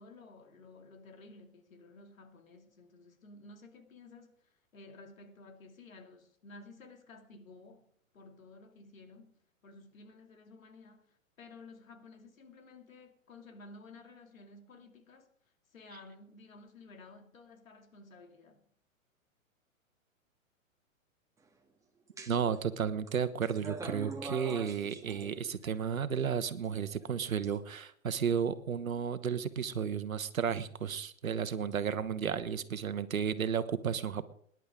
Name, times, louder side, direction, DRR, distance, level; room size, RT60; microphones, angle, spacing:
voice 1, 0.0-15.3 15.7-18.7, left 3 dB, 75° left, 2.6 m, -54 dB
sound 1, 22.2-22.6 23.1-25.8 26.6-27.5, right 3 dB, 10° right, 1.7 m, -43 dB
voice 2, 22.3-34.2, right 7 dB, 80° right, 1.3 m, -33 dB
25.0 x 11.0 x 3.7 m
hypercardioid pair, 115°, 41 cm